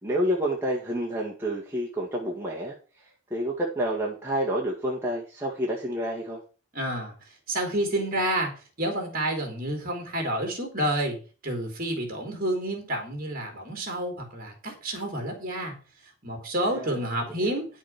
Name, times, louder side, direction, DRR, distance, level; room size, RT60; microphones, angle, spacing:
voice 1, 0.0-2.8 3.3-6.4 16.7-17.0 17.4-17.6, right 1 dB, 10° right, -3 dB, 1.8 m, -29 dB
voice 2, 6.7-7.1 7.5-8.5 8.8-11.2 11.4-15.8 16.2-17.7, right 1 dB, 40° right, 2 dB, 3.5 m, -29 dB
10.5 x 6.3 x 5.9 m, 0.35 s
head